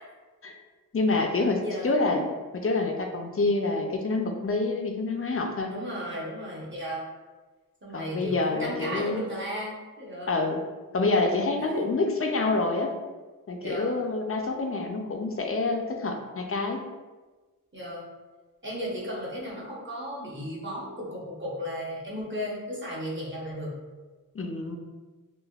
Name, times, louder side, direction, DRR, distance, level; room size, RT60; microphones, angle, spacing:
voice 1, 0.9-2.2 2.6-5.7 7.9-9.2 10.3-10.6 10.9-12.9 13.5-16.8 24.3-24.8, left 3 dB, 40° left, 3 dB, 0.4 m, -27 dB
voice 2, 1.6-2.2 5.7-7.1 7.8-10.4 11.7-11.8 13.6-13.9 17.7-18.0 18.6-23.8, equal, 35° right, -5 dB, 0.8 m, -35 dB
3.2 x 2.2 x 2.3 m, 1.3 s
wide cardioid pair, 60°, 34 cm